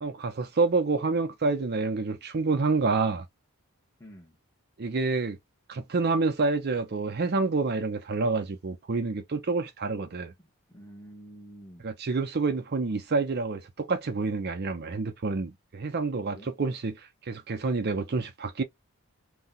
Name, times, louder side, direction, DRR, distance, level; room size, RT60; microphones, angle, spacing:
voice 1, 0.0-3.3 4.8-5.4 5.7-10.3 11.8-18.6, right 3 dB, 45° right, 0.5 m, -28 dB
voice 2, 4.0-4.4 10.4-11.9 16.3-16.5, equal, 10° left, 1.0 m, -49 dB
2.7 x 2.2 x 3.8 m
head